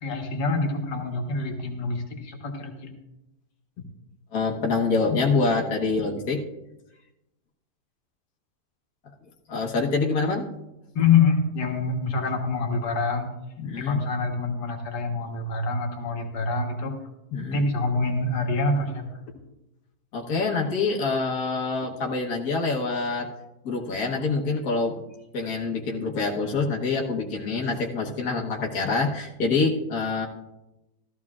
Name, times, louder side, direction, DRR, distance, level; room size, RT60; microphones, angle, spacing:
voice 1, 0.0-2.9 6.0-6.1 10.9-13.3 13.8-17.0 17.5-19.1, left 4 dB, 85° left, 2 dB, 1.9 m, -26 dB
voice 2, 4.3-6.4 9.5-10.5 13.6-14.0 17.3-17.7 20.1-23.3 23.6-25.0 25.3-30.3, left 4 dB, 65° left, -1 dB, 1.7 m, -26 dB
14.0 x 14.0 x 2.4 m, 0.95 s
omnidirectional pair, 1.7 m